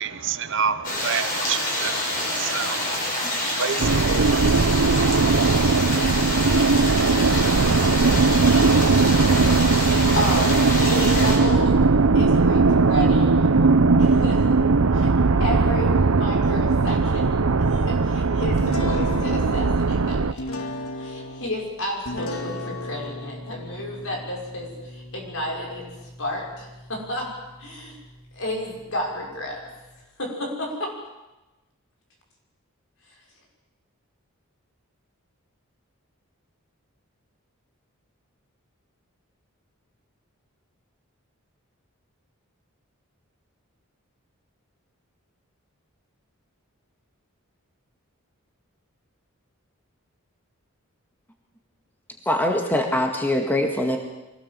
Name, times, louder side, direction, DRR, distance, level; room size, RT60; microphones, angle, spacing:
voice 1, 0.0-2.0 2.4-2.9 3.5-4.4, right 6 dB, 55° right, 12 dB, 1.0 m, -28 dB
sound 1, 0.8-11.4, left 1 dB, 40° left, 7.0 m, -27 dB
sound 2, 3.8-20.3, right 3 dB, 80° right, 0.8 m, -19 dB
voice 2, 10.1-10.6 10.9-11.7 12.1-13.5 14.0-14.5 14.9-15.1 15.4-17.3 17.6-20.6 21.0-27.3 27.6-28.0 28.3-29.6 30.2-30.9 33.1-33.2, left 1 dB, 65° left, 0 dB, 6.2 m, -31 dB
sound 3, 18.6-30.0, left 1 dB, 85° left, 2.2 m, -37 dB
voice 3, 52.3-54.0, left 1 dB, 10° left, 3 dB, 1.8 m, -23 dB
24.0 x 17.5 x 7.6 m, 1.0 s
head